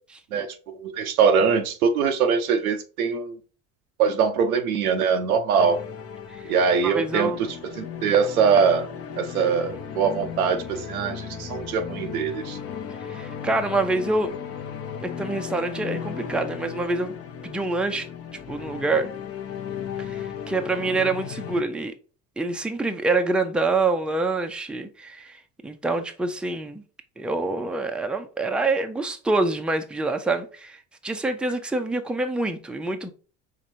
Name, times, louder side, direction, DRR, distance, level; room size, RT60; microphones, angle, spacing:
voice 1, 0.3-3.4 4.0-5.8 6.5-7.3 7.8-8.9 9.2-12.6, right 6 dB, 85° right, 0.8 m, -22 dB
sound 1, 5.6-21.6, left 7 dB, 35° left, 0.8 m, -36 dB
voice 2, 6.8-7.4 13.1-14.3 15.0-17.1 17.4-18.1 18.5-19.1 20.0-21.9 22.4-25.4 25.6-26.8 27.2-33.1, right 3 dB, ahead, 0.6 m, -26 dB
4.9 x 3.2 x 2.7 m
hypercardioid pair, 65°, 42 cm